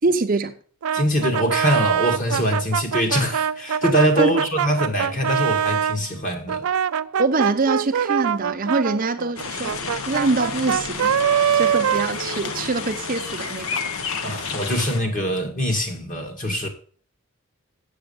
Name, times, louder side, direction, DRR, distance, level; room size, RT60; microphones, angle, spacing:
voice 1, 0.0-0.5 4.2-4.3 7.2-11.3 11.5-13.8, right 3 dB, 40° right, 0.7 m, -24 dB
Brass instrument, 0.8-6.0 6.5-12.8, right 8 dB, 75° right, 0.4 m, -24 dB
voice 2, 0.9-6.7 14.2-16.7, equal, 35° left, 2.2 m, -23 dB
sound 1, 9.4-15.0, left 5 dB, 75° left, 1.0 m, -31 dB
7.8 x 7.5 x 6.9 m
head